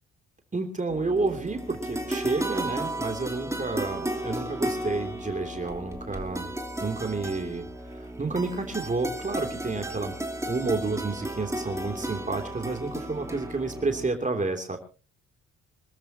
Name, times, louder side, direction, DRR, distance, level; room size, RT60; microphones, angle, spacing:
voice 1, 0.5-6.5 6.8-10.1 10.4-14.8, right 3 dB, 25° right, 5 dB, 3.1 m, -30 dB
sound 1, 0.9-14.1, right 1 dB, 10° right, 2.8 m, -34 dB
26.5 x 13.5 x 3.0 m, 0.34 s
cardioid pair, 90°, 30 cm